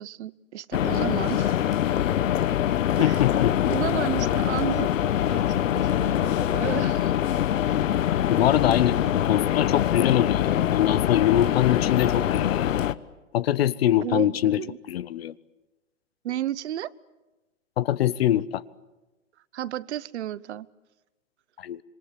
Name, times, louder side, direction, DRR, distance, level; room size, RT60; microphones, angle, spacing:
voice 1, 0.0-1.8 3.0-3.2 3.7-7.2 9.1-9.2 14.0-14.8 16.2-16.9 19.5-20.7, right 12 dB, 60° right, 20 dB, 0.9 m, -33 dB
sound 1, 0.7-12.9, left 11 dB, 90° left, 1.1 m, -24 dB
voice 2, 3.0-3.7 8.3-12.8 13.3-14.6 14.9-15.3 17.8-18.6 21.6-21.8, left 12 dB, 50° left, 20 dB, 0.9 m, -23 dB
26.5 x 25.0 x 8.3 m, 1.1 s
hypercardioid pair, 170°, 38 cm